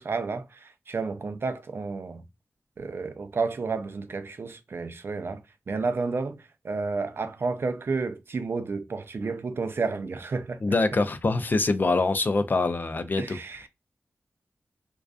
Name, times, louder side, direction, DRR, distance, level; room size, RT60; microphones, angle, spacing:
voice 1, 0.0-2.2 2.8-5.4 5.7-6.4 6.6-10.6 13.2-13.7, right 4 dB, 55° right, 0.4 m, -31 dB
voice 2, 10.6-13.4, left 3 dB, 45° left, 0.4 m, -24 dB
2.4 x 2.2 x 2.3 m
cardioid pair, 65°, 5 cm